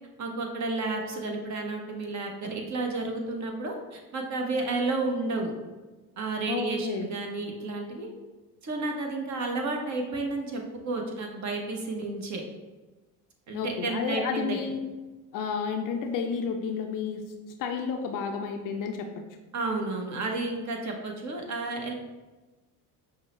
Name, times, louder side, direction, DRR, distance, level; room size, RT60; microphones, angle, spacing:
voice 1, 0.2-5.5 6.2-8.1 8.6-12.4 13.5-14.6 19.5-21.9, right 3 dB, 40° right, 2 dB, 0.8 m, -31 dB
voice 2, 6.5-7.1 13.5-14.8 15.3-17.2 17.6-19.1, left 6 dB, 45° left, 5 dB, 0.5 m, -31 dB
5.5 x 2.1 x 3.0 m, 1.2 s
hypercardioid pair, 65°, 45 cm